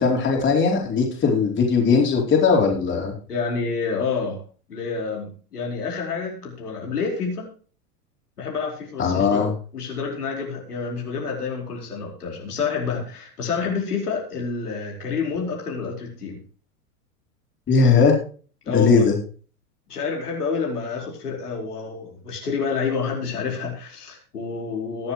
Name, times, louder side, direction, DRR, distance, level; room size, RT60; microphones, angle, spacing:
voice 1, 0.0-3.1 9.0-9.5 17.7-18.1 18.7-19.1, left 5 dB, 25° left, 0 dB, 4.2 m, -19 dB
voice 2, 3.3-4.4 4.7-7.4 8.4-16.4 18.6-19.1 19.9-25.1, left 5 dB, 85° left, -1 dB, 4.8 m, -28 dB
21.5 x 7.6 x 3.2 m, 0.39 s
hypercardioid pair, 105°, 45 cm